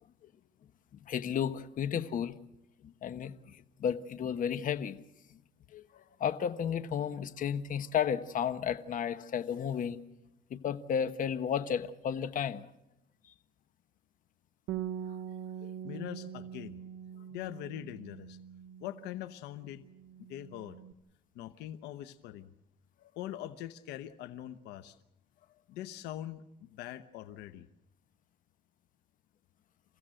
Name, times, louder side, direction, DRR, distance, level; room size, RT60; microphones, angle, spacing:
voice 1, 1.1-2.3 3.0-3.3 3.8-5.0 5.7-5.8 6.2-10.0 10.5-12.6, left 8 dB, 50° left, 1.3 m, -32 dB
Bass guitar, 14.7-19.4 19.6-20.9, right 9 dB, 85° right, 1.0 m, -43 dB
voice 2, 15.8-16.8 17.3-18.4 18.8-19.8 20.3-20.8 21.3-22.5 23.2-25.0 25.7-27.7, left 12 dB, 90° left, 1.0 m, -42 dB
29.0 x 15.5 x 7.8 m
cardioid pair, 110°, 17 cm